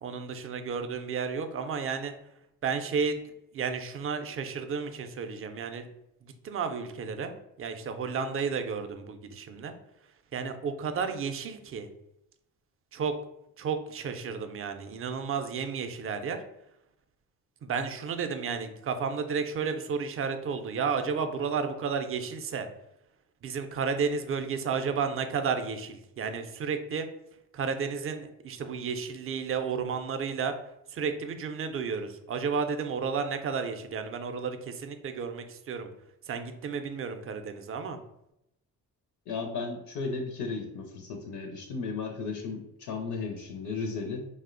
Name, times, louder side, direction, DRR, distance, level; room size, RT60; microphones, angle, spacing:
voice 1, 0.0-2.1 2.6-3.2 3.5-5.9 6.4-7.3 7.6-9.7 10.3-11.9 12.9-13.1 13.6-16.4 17.6-22.7 23.4-27.1 27.5-30.5 30.9-35.9 36.3-38.0, right 5 dB, 35° right, 8 dB, 0.4 m, -32 dB
voice 2, 39.3-44.3, left 4 dB, 65° left, 4 dB, 0.5 m, -35 dB
2.7 x 2.0 x 2.5 m, 0.83 s
hypercardioid pair, 50°, 43 cm